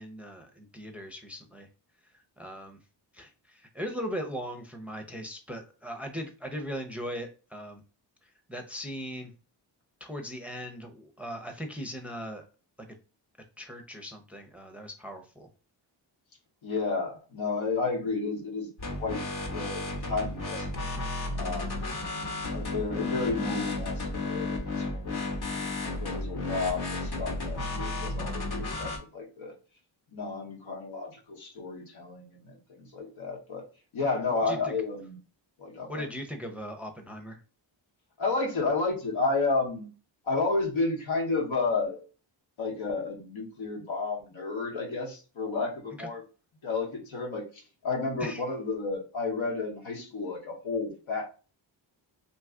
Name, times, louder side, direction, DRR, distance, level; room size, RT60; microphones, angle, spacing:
voice 1, 0.0-1.7 2.1-2.8 3.1-7.8 8.5-9.3 10.0-12.4 13.6-15.5 34.5-34.8 35.9-37.4 46.0-46.1 48.2-48.4, equal, 5° right, 4 dB, 0.5 m, -39 dB
voice 2, 16.6-18.7 19.0-19.2 19.5-20.7 21.3-21.8 22.5-25.2 26.0-29.5 30.1-33.6 33.9-35.2 35.6-36.1 38.2-39.9 40.3-42.0 42.6-46.2 46.6-51.3, left 3 dB, 80° left, 0 dB, 1.1 m, -31 dB
Dubstep Bassline Datsik Style, 18.8-29.0, left 2 dB, 55° left, 1.0 m, -33 dB
2.8 x 2.3 x 3.6 m, 0.35 s
cardioid pair, 70°, 47 cm